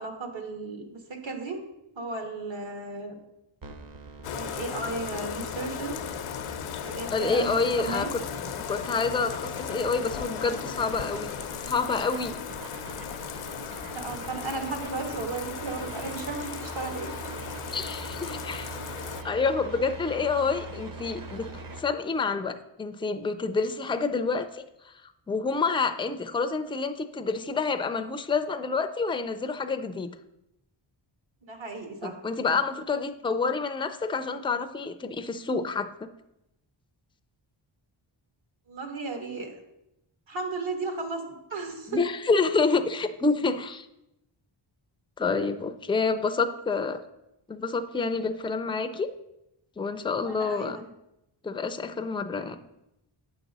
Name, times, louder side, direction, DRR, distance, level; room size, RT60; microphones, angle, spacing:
voice 1, 0.0-1.6 1.9-3.1 4.3-5.9 6.8-8.1 13.9-17.4 31.5-32.2 38.7-39.5 40.3-41.2 41.5-42.0 50.2-50.9, right 3 dB, 65° right, 4 dB, 1.4 m, -35 dB
sound 1, 3.6-21.8, right 3 dB, 45° right, 0.9 m, -43 dB
Bathtub (filling or washing), 4.2-19.2, left 8 dB, 85° left, 0.6 m, -37 dB
voice 2, 7.1-8.2 8.5-11.3 11.7-12.4 17.7-18.7 19.2-21.5 21.8-24.6 25.3-30.1 32.0-35.9 41.9-43.9 45.2-47.0 47.5-49.1 49.8-50.8 51.4-52.6, left 4 dB, 10° left, 9 dB, 0.3 m, -28 dB
8.6 x 6.0 x 4.0 m, 0.88 s
wide cardioid pair, 125°, 49 cm